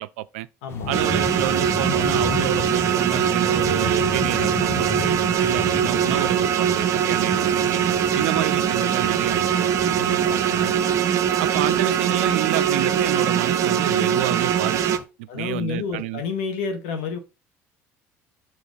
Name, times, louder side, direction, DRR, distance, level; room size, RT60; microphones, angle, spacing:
voice 1, 0.0-0.5 0.9-7.8 8.1-10.7 11.4-16.2, right 16 dB, 90° right, 0.4 m, -30 dB
voice 2, 0.6-1.1 9.9-10.7 15.3-17.2, left 5 dB, 85° left, 1.6 m, -30 dB
sound 1, 0.7-15.0, left 6 dB, 40° left, 1.3 m, -34 dB
sound 2, 0.9-15.0, right 9 dB, 55° right, 0.7 m, -22 dB
6.2 x 3.0 x 5.1 m
supercardioid pair, 80°, 6 cm